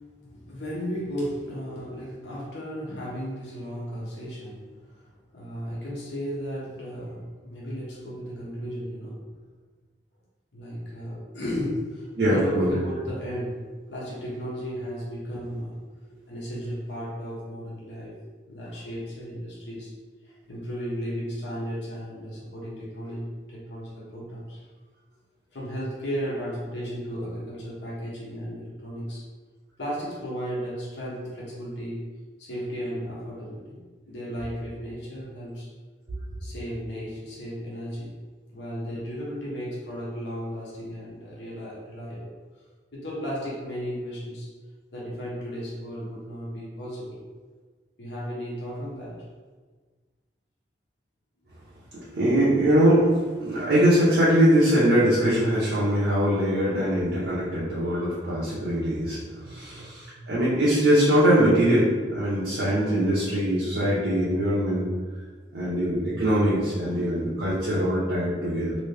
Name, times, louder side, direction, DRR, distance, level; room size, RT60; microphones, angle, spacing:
voice 1, 0.2-4.7 5.0-5.1 5.3-9.2 10.5-15.8 16.3-18.1 18.5-19.9 20.2-24.6 25.5-29.2 29.8-32.1 32.4-35.7 36.4-38.1 38.5-42.3 42.9-44.5 44.9-47.2 48.0-49.2 56.6-57.0 59.2-60.3 65.5-65.7 66.9-67.2, equal, 75° left, -6 dB, 1.0 m, -35 dB
voice 2, 12.2-12.8 51.9-53.1 53.4-59.2 59.4-64.9 65.5-68.8, equal, 85° right, -9 dB, 0.8 m, -22 dB
3.0 x 2.7 x 3.3 m, 1.4 s
head